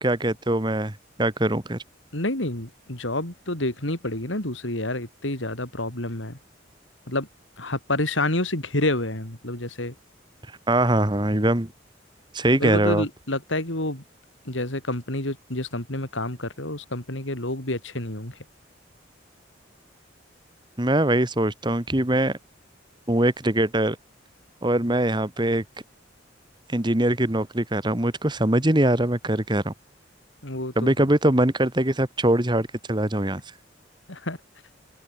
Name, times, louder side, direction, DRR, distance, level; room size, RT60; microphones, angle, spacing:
voice 1, 0.0-0.9 1.2-1.8 10.7-11.7 12.3-13.1 20.8-22.4 23.1-24.0 24.6-25.6 26.7-29.7 30.8-33.4, right 1 dB, 25° right, 1.7 m, -22 dB
voice 2, 2.1-6.4 7.1-7.3 7.6-9.9 12.6-14.0 14.5-18.4 30.4-31.0 34.1-34.4, left 1 dB, 80° left, 5.2 m, -28 dB
open air
head